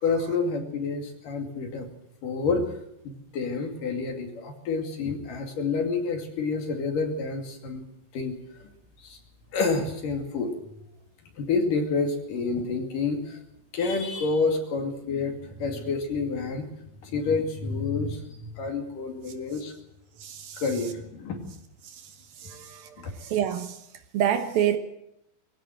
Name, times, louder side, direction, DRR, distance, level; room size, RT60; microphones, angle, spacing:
voice 1, 0.0-1.9 2.2-2.7 3.0-7.8 8.1-8.7 9.0-9.2 9.5-10.5 11.4-13.4 13.7-16.7 17.0-19.7 20.6-21.4 23.0-23.1, left 4 dB, 55° left, 4 dB, 3.9 m, -28 dB
voice 2, 20.2-20.6 21.8-22.0 22.4-23.8 24.1-24.8, right 10 dB, 70° right, 8 dB, 2.8 m, -28 dB
21.0 x 17.0 x 7.8 m, 0.80 s
omnidirectional pair, 4.8 m